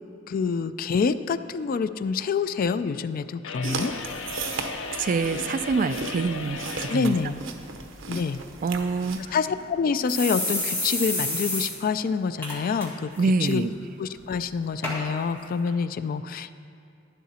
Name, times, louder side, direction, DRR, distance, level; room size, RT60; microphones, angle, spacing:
voice 1, 0.3-3.9 6.9-7.4 8.1-8.4 9.3-13.1 13.4-13.6 14.0-16.5, left 5 dB, 45° left, 13 dB, 0.3 m, -27 dB
sound 1, 3.4-7.1, left 4 dB, 85° left, 0.7 m, -36 dB
sound 2, 3.6-9.3, right 4 dB, 75° right, 0.9 m, -36 dB
voice 2, 5.0-7.2 8.6-9.3 13.2-13.7, right 4 dB, 45° right, 13 dB, 0.3 m, -26 dB
sound 3, 9.1-9.2 9.6-9.7 10.1-11.7 12.0-12.1 12.4-12.9 13.2-13.5 14.2-14.3 14.8-15.0 15.7-15.8, left 1 dB, 15° left, 1.8 m, -29 dB
11.0 x 10.5 x 4.2 m, 2.5 s
head